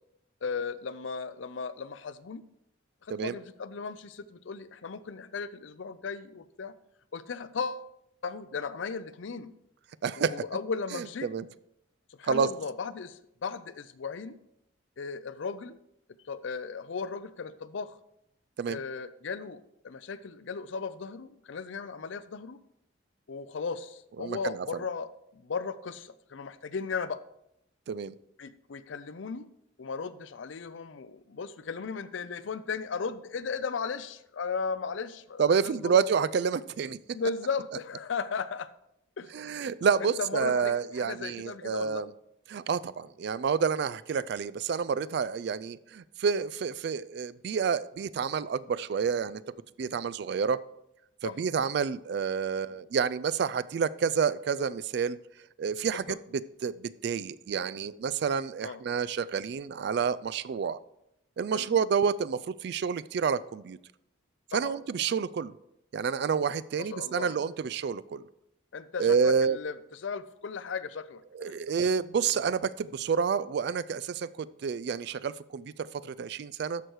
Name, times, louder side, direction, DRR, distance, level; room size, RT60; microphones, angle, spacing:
voice 1, 0.4-2.4 3.0-6.7 7.1-7.9 8.2-9.5 10.2-11.3 12.2-14.4 15.0-15.8 16.2-18.0 18.7-22.6 23.3-27.2 28.4-29.5 29.8-36.0 37.1-38.7 39.2-39.3 40.0-42.0 51.2-51.3 55.9-56.2 58.6-58.8 61.5-61.7 64.5-64.8 66.8-67.4 68.7-69.7 70.0-71.5, left 5 dB, 70° left, 14 dB, 0.5 m, -36 dB
voice 2, 10.0-10.3 10.9-11.4 12.2-12.5 18.6-18.8 24.2-24.7 27.9-28.1 35.4-37.0 39.3-42.1 42.5-49.4 49.8-50.6 51.2-55.2 55.6-60.8 61.4-63.8 64.5-65.5 65.9-68.2 69.0-69.6 71.3-76.8, right 6 dB, 55° right, 18 dB, 0.3 m, -29 dB
12.5 x 4.7 x 4.6 m, 0.81 s
head